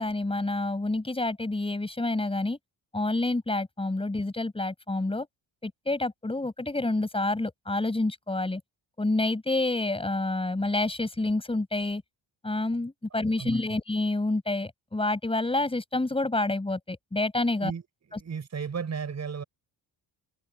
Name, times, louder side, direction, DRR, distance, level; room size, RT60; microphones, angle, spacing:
voice 1, 0.0-2.6 2.9-5.3 5.6-8.6 9.0-12.0 12.4-17.7, left 2 dB, 15° left, 5.8 m, -28 dB
voice 2, 13.1-13.6 17.6-17.8 18.1-19.4, right 6 dB, 40° right, 6.9 m, -34 dB
wide cardioid pair, 155°, 42 cm